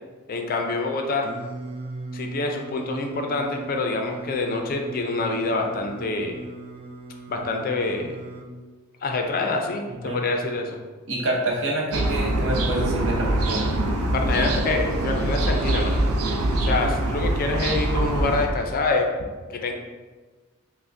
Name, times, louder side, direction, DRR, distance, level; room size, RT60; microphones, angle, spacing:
voice 1, 0.3-1.3 2.1-6.3 7.3-8.2 9.0-10.8 14.1-16.0 16.6-19.1 19.6-19.7, left 3 dB, 45° left, 3 dB, 0.4 m, -26 dB
Singing, 1.2-8.5, right 2 dB, 25° right, 0.3 m, -39 dB
voice 2, 11.1-13.7, right 1 dB, 65° right, -2 dB, 0.8 m, -27 dB
sound 1, 11.9-18.5, right 1 dB, 85° right, 0.5 m, -24 dB
5.6 x 2.1 x 2.6 m, 1.3 s
head